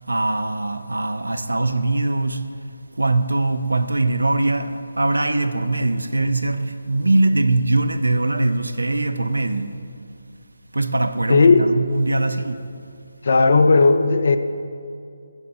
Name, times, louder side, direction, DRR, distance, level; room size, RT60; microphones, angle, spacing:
voice 1, 0.1-2.5 2.9-9.8 10.7-12.7, right 2 dB, 80° right, 0.3 m, -21 dB
voice 2, 11.3-11.8 13.2-14.4, left 4 dB, 55° left, 0.4 m, -15 dB
6.6 x 4.2 x 5.5 m
figure-of-eight pair, 150°, 0 cm